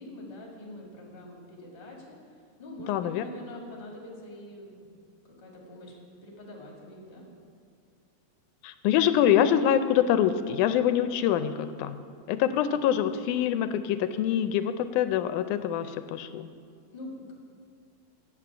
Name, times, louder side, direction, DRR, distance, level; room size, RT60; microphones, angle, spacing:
voice 1, 0.0-2.2 2.6-4.8 5.2-6.0 6.2-7.3 16.9-17.3, left 1 dB, 20° left, -2 dB, 1.6 m, -44 dB
voice 2, 2.9-3.2 8.6-12.0 12.3-16.5, left 10 dB, 90° left, 11 dB, 2.0 m, -25 dB
8.3 x 7.4 x 8.6 m, 2.3 s
omnidirectional pair, 3.5 m